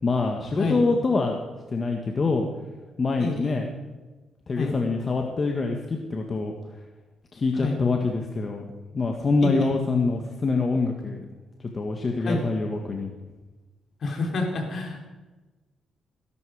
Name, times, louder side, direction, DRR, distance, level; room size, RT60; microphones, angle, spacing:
voice 1, 0.0-1.4 1.7-2.6 3.0-3.7 4.5-6.9 7.3-8.6 8.9-11.2 11.6-13.1, left 3 dB, 40° left, 2 dB, 1.7 m, -25 dB
voice 2, 3.2-3.6 4.6-4.7 7.5-7.8 9.4-9.8 12.2-12.4 14.0-15.0, left 3 dB, 60° left, 2 dB, 3.6 m, -28 dB
18.0 x 11.5 x 5.0 m, 1.2 s
cardioid pair, 75°, 0 cm